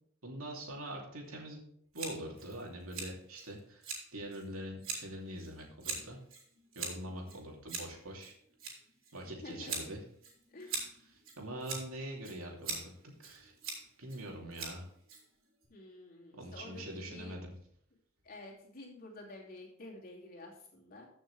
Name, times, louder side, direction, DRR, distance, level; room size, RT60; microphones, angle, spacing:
voice 1, 0.2-1.7 1.9-6.2 6.7-8.3 9.1-10.0 10.7-10.8 11.4-12.9 13.2-13.5 14.0-14.8 16.4-17.5, right 1 dB, 85° right, 0 dB, 2.8 m, -43 dB
Scissors, 1.9-15.7, right 4 dB, 70° right, 3.5 m, -44 dB
voice 2, 9.4-9.9 10.5-10.7 15.7-17.4 18.2-21.1, left 2 dB, 45° left, -2 dB, 2.8 m, -50 dB
14.5 x 6.4 x 3.4 m, 0.64 s
head